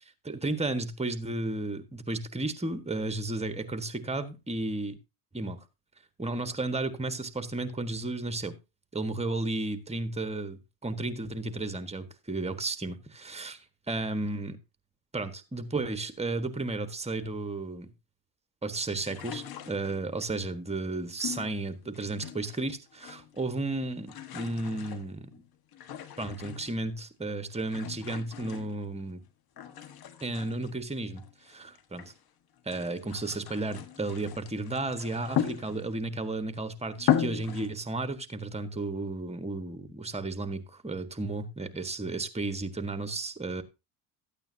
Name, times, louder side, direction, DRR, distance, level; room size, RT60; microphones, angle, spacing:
voice 1, 0.2-5.0 5.3-5.6 6.2-8.6 8.9-14.6 15.1-17.9 18.6-25.3 26.2-29.2 30.2-32.1 32.6-43.6, right 2 dB, 15° right, 1.5 m, -33 dB
sound 1, 19.0-20.2 21.2-22.7 22.9-23.5 23.8-26.9 27.5-29.2 29.6-32.2 32.6-36.1 36.6-36.7 37.0-37.7, left 10 dB, 50° left, 1.5 m, -36 dB
13.5 x 8.9 x 2.8 m
supercardioid pair, 80°, 45 cm